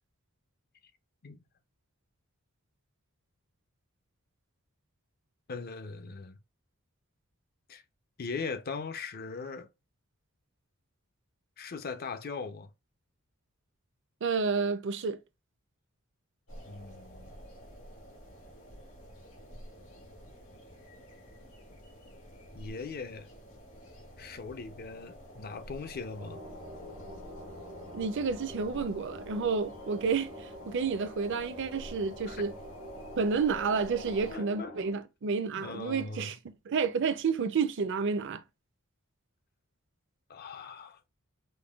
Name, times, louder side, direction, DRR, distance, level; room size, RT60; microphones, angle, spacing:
voice 1, 5.5-6.4 7.7-7.8 8.2-9.7 11.6-12.7 16.7-17.3 22.5-23.3 24.2-26.4 32.3-32.4 34.3-34.7 35.6-36.3 40.3-41.0, left 4 dB, 45° left, 0.5 m, -40 dB
voice 2, 14.2-15.2 27.9-30.3 30.7-32.5 33.2-36.4 36.7-38.4, right 5 dB, 60° right, 0.5 m, -30 dB
sound 1, 16.5-34.4, equal, 85° left, 2.1 m, -50 dB
sound 2, 26.1-34.9, equal, 65° left, 1.9 m, -46 dB
5.2 x 2.2 x 2.3 m
head